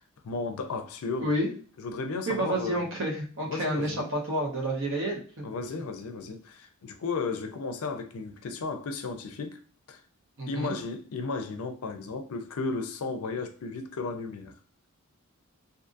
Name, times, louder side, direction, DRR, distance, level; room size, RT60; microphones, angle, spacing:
voice 1, 0.2-1.3 1.8-2.9 3.5-4.1 5.4-9.6 9.9-10.0 10.5-14.5, left 4 dB, 75° left, 0.5 m, -34 dB
voice 2, 2.3-5.5 10.4-10.7, right 1 dB, 60° right, 0.9 m, -29 dB
2.5 x 2.5 x 2.5 m
head